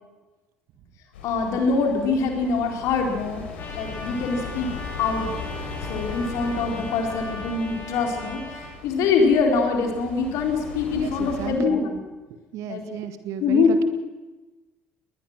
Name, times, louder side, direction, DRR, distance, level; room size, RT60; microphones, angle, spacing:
sound 1, 1.1-11.5, left 4 dB, 70° left, 4.2 m, -38 dB
voice 1, 1.2-3.4 3.8-4.7 5.0-5.3 5.9-12.0 12.7-12.8 13.4-13.8, left 4 dB, 55° left, 2 dB, 4.0 m, -23 dB
Trumpet, 3.6-8.7, left 2 dB, 35° left, 5.9 m, -39 dB
voice 2, 10.9-11.8 12.5-13.8, right 10 dB, 55° right, 10 dB, 1.8 m, -33 dB
20.5 x 20.0 x 6.3 m, 1.2 s
figure-of-eight pair, 55°, 6 cm